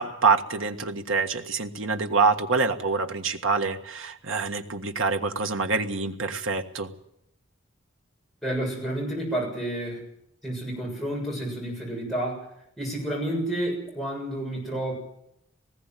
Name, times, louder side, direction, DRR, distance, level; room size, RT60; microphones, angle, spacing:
voice 1, 0.0-6.9, right 4 dB, 75° right, 6 dB, 1.6 m, -26 dB
voice 2, 8.4-10.0 10.4-12.4 12.8-14.9, right 1 dB, ahead, -3 dB, 7.2 m, -30 dB
19.5 x 16.0 x 9.2 m, 0.76 s
head